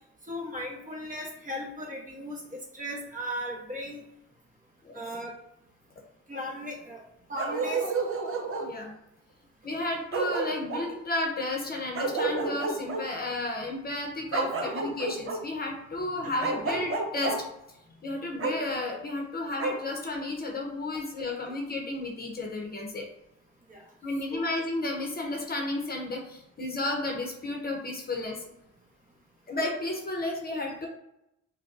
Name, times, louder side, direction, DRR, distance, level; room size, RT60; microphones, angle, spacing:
voice 1, 0.3-4.0 4.9-5.4 6.3-7.0 7.3-7.9 14.6-14.7 23.7-23.8 24.3-24.5, equal, 25° right, -1 dB, 1.0 m, -37 dB
Bark, 7.4-8.7 9.7-9.8 10.1-10.9 12.0-13.0 14.3-15.4 16.4-17.4 18.4-18.5 19.6-19.8, right 3 dB, 45° right, 0.7 m, -30 dB
voice 2, 8.6-8.9 9.6-17.4 17.7-17.8 18.0-23.1 24.0-28.4 29.5-30.9, left 2 dB, 30° left, 1 dB, 0.8 m, -32 dB
4.9 x 2.3 x 2.5 m, 0.83 s
cardioid pair, 90°, 30 cm